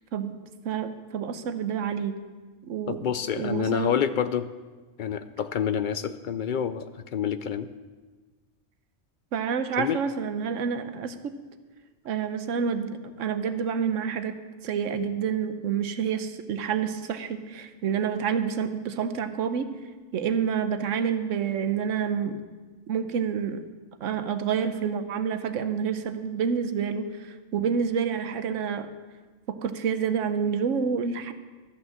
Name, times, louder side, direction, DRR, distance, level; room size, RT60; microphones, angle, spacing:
voice 1, 0.6-2.2 2.6-3.1 3.4-3.9 9.3-11.1 12.0-14.3 14.6-19.7 20.1-22.4 22.9-23.6 24.0-28.9 29.5-31.3, right 7 dB, 90° right, 10 dB, 1.1 m, -28 dB
voice 2, 2.9-4.5 5.0-7.7 9.8-10.0, left 8 dB, 60° left, 12 dB, 0.5 m, -28 dB
13.0 x 6.3 x 7.2 m, 1.4 s
omnidirectional pair, 1.3 m